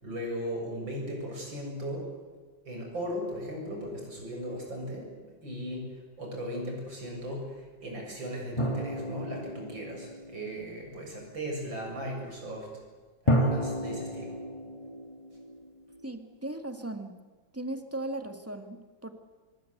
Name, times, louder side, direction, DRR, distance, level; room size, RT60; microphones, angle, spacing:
voice 1, 0.0-2.2 2.7-12.7 13.2-14.3, equal, 80° right, 0 dB, 8.0 m, -37 dB
sound 1, 8.6-10.9 13.3-16.2, equal, 15° left, 2.0 m, -32 dB
voice 2, 16.0-17.2 17.5-19.1, right 1 dB, 5° right, 7 dB, 2.1 m, -37 dB
25.0 x 24.0 x 8.2 m, 1.4 s
omnidirectional pair, 2.0 m